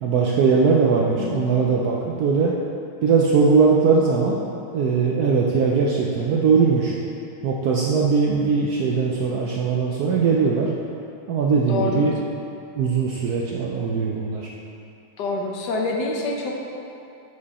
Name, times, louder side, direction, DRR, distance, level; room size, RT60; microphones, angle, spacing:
voice 1, 0.0-2.5 3.0-4.4 4.7-6.9 7.4-10.7 11.3-12.2 12.7-14.5, right 5 dB, 70° right, -3 dB, 0.9 m, -20 dB
voice 2, 1.2-1.5 11.7-12.1 15.2-16.6, left 3 dB, 65° left, 0 dB, 1.2 m, -26 dB
8.2 x 5.0 x 4.2 m, 2.7 s
omnidirectional pair, 2.2 m